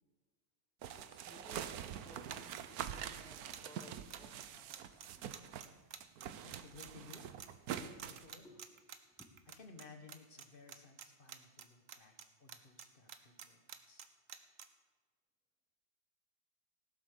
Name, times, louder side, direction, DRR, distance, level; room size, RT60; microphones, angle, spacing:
sound 1, 0.8-5.7 6.0-8.3, right 9 dB, 85° right, 1.2 m, -45 dB
voice 1, 0.9-1.7 2.0-5.2 8.4-8.6 9.0-9.3, left 2 dB, 5° left, 3 dB, 1.4 m, -60 dB
sound 2, 3.5-9.8 10.1-10.4 10.7-12.2 12.5-14.7, right 8 dB, 65° right, 1.2 m, -50 dB
voice 2, 6.4-7.4 7.6-8.6 9.6-14.0, left 4 dB, 40° left, 6 dB, 1.4 m, -58 dB
17.0 x 7.7 x 6.6 m, 1.4 s
omnidirectional pair, 1.6 m